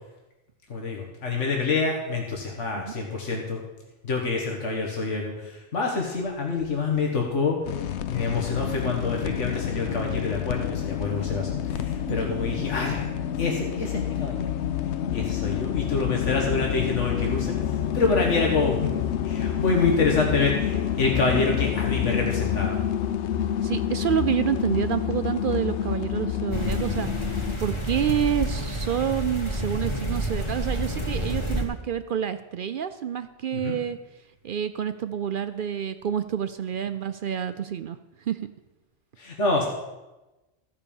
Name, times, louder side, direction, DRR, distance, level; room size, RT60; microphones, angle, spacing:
voice 1, 0.7-3.6 4.0-7.6 8.1-13.1 13.4-14.5 15.1-17.5 17.9-18.9 19.2-22.8 33.5-33.8 39.2-39.7, left 4 dB, 90° left, 0 dB, 1.8 m, -26 dB
sound 1, 7.6-27.6, left 10 dB, 75° left, 0.9 m, -28 dB
voice 2, 23.6-34.0 34.4-38.5, right 9 dB, 60° right, 11 dB, 0.6 m, -28 dB
sound 2, 26.5-31.6, right 1 dB, 25° left, 1.6 m, -29 dB
14.0 x 5.5 x 7.0 m, 1.1 s
omnidirectional pair, 1.2 m